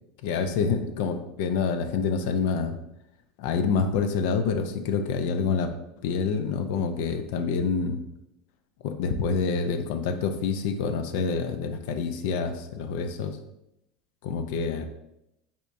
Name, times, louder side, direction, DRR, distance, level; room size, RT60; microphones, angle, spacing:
voice 1, 0.2-2.8 3.4-5.7 6.0-8.0 8.8-13.4 14.2-14.8, left 5 dB, 70° left, 8 dB, 0.4 m, -27 dB
5.2 x 3.5 x 2.6 m, 0.86 s
hypercardioid pair, 95°, 0 cm